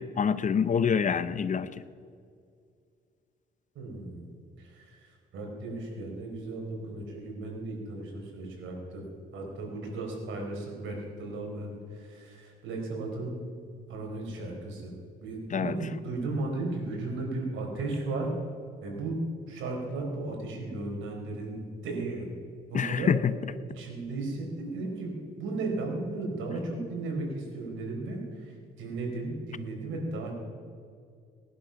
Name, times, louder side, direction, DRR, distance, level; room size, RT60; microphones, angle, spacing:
voice 1, 0.0-1.7 15.5-15.7 22.7-23.2, left 7 dB, 40° left, 14 dB, 0.6 m, -26 dB
voice 2, 3.7-4.3 4.6-9.0 9.3-13.4 13.9-15.0 15.2-18.3 18.8-22.3 22.7-23.2 23.7-30.3, right 2 dB, 80° right, 0 dB, 4.1 m, -35 dB
19.0 x 11.0 x 5.8 m, 2.2 s
cardioid pair, 90°, 20 cm